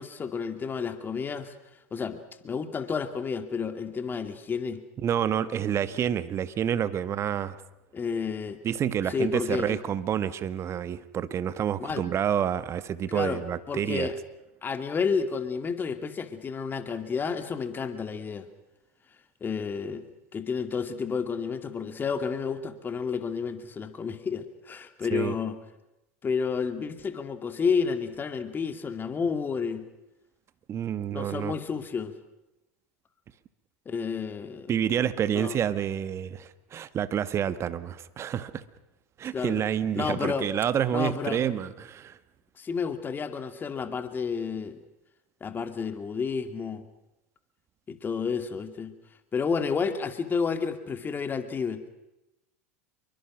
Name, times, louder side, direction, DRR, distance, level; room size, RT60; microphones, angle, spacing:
voice 1, 0.0-1.5 1.9-4.8 7.9-8.6 9.1-9.8 11.8-12.1 13.1-13.4 13.7-14.2 14.6-18.5 19.4-20.0 20.3-25.6 26.2-29.8 31.1-32.1 33.9-34.7 35.3-35.6 39.3-39.6 39.9-40.5 40.9-41.4 42.6-44.8 45.4-46.9 47.9-48.9 49.3-51.8, left 5 dB, 25° left, 2.4 m, -30 dB
voice 2, 5.0-7.6 8.6-14.1 25.1-25.4 30.7-31.5 34.7-38.6 39.2-42.2, right 9 dB, 35° right, 1.5 m, -28 dB
27.0 x 23.5 x 6.3 m
hypercardioid pair, 95°, 8 cm